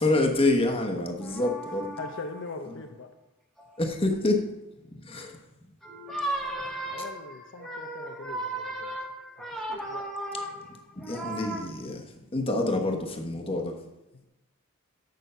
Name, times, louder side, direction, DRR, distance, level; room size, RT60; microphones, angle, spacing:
voice 1, 0.0-1.9 2.7-2.8 3.8-4.4 5.0-5.4 11.1-12.0 12.3-13.7, left 2 dB, 25° left, 3 dB, 1.1 m, -27 dB
voice 2, 1.1-1.5 2.0-3.1 6.9-9.0 9.7-10.0 10.3-10.7, left 3 dB, 60° left, 5 dB, 0.7 m, -41 dB
sound 1, 1.2-2.5 3.6-3.9 5.8-11.6, right 1 dB, ahead, 1.2 m, -36 dB
6.7 x 6.3 x 6.8 m, 0.93 s
head